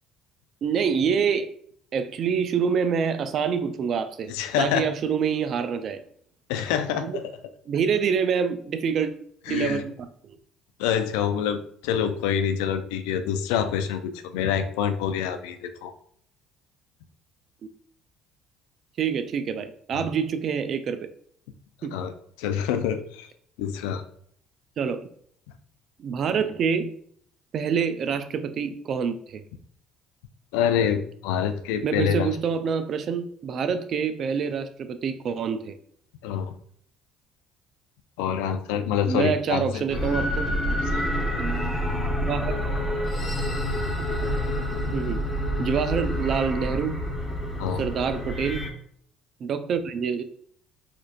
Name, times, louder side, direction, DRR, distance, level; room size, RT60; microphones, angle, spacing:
voice 1, 0.6-1.5 1.9-6.0 7.0-7.2 7.7-9.1 9.5-9.9 19.0-21.0 21.8-22.0 24.8-25.1 26.0-26.9 27.5-29.4 31.8-35.8 39.1-40.5 41.4-42.6 44.8-45.2 45.6-47.0 47.8-48.7 49.4-50.2, right 6 dB, 55° right, 10 dB, 0.4 m, -26 dB
voice 2, 4.3-4.9 6.5-7.2 9.5-9.8 10.8-15.9 19.9-20.1 21.9-22.1 22.4-23.3 23.6-24.0 30.5-32.3 36.2-36.5 38.2-39.9 40.9-41.0 47.6-47.8, left 8 dB, 85° left, 9 dB, 0.4 m, -26 dB
Scary effect, 39.9-48.7, equal, 15° left, 1.1 m, -28 dB
4.4 x 2.6 x 2.4 m, 0.63 s
supercardioid pair, 75°, 0 cm